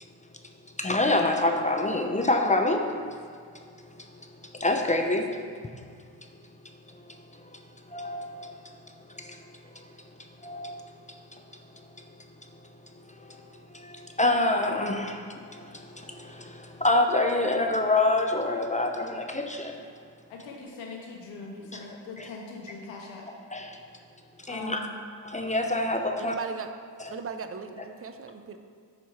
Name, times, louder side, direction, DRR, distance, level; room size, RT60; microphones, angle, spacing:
voice 1, 0.8-3.1 4.5-5.4 7.1-7.2 7.9-8.7 9.1-9.4 10.4-11.0 11.3-11.4 13.2-13.4 13.7-19.8 21.7-21.8 22.2-22.3 23.5-23.8 24.4-24.8 25.2-26.4, left 2 dB, 15° left, 4 dB, 0.6 m, -27 dB
voice 2, 20.3-23.2 24.5-24.9, left 3 dB, 90° left, -1 dB, 1.3 m, -41 dB
voice 3, 26.2-28.6, right 5 dB, 30° right, 8 dB, 0.6 m, -38 dB
9.0 x 3.1 x 5.6 m, 2.1 s
supercardioid pair, 60°, 45 cm